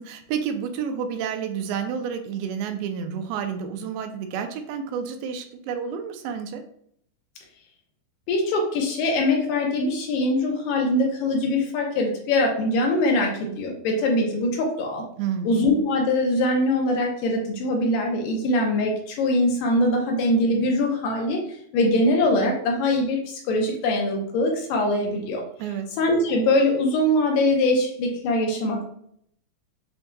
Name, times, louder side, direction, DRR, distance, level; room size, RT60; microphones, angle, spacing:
voice 1, 0.0-6.6 15.2-15.6 25.6-25.8, right 7 dB, 85° right, 7 dB, 2.4 m, -30 dB
voice 2, 8.3-15.0 15.5-21.4 21.7-25.4 26.0-28.9, left 1 dB, 75° left, 1 dB, 2.2 m, -22 dB
6.9 x 2.7 x 2.2 m, 0.67 s
omnidirectional pair, 4.2 m